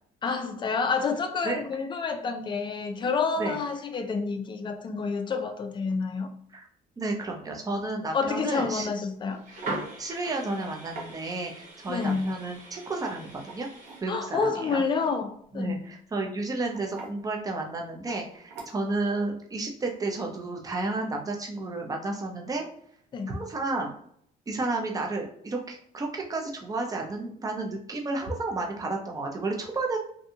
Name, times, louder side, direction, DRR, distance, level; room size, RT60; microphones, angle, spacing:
voice 1, 0.2-6.3 8.1-9.4 11.9-12.4 14.1-15.8 23.1-23.4, left 4 dB, 30° left, 0.4 m, -29 dB
voice 2, 7.0-8.9 10.0-13.7 14.0-14.8 15.5-22.6 23.3-23.9 24.5-30.0, right 2 dB, 20° right, 0.6 m, -32 dB
sound 1, 9.1-9.2 9.6-9.8 11.0-11.1 11.9-12.5 13.3-14.1 15.7-16.0 16.7-17.2 18.1-18.2 18.5-19.0, right 3 dB, 80° right, 0.9 m, -43 dB
sound 2, 9.3-14.0, right 2 dB, 50° right, 1.0 m, -40 dB
2.6 x 2.3 x 2.7 m
cardioid pair, 110°, 17 cm